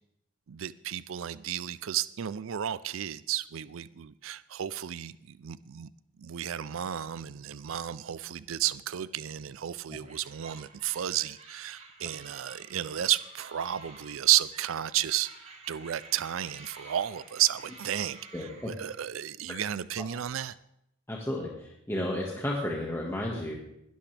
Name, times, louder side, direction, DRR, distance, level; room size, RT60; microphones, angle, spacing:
voice 1, 0.5-5.9 6.2-20.5, right 11 dB, 80° right, 0.4 m, -32 dB
sound 1, 10.0-19.1, right 3 dB, 30° right, 6.7 m, -51 dB
voice 2, 18.3-18.7 20.0-20.1 21.1-23.6, left 1 dB, 10° left, 1.6 m, -33 dB
21.0 x 12.0 x 3.4 m
head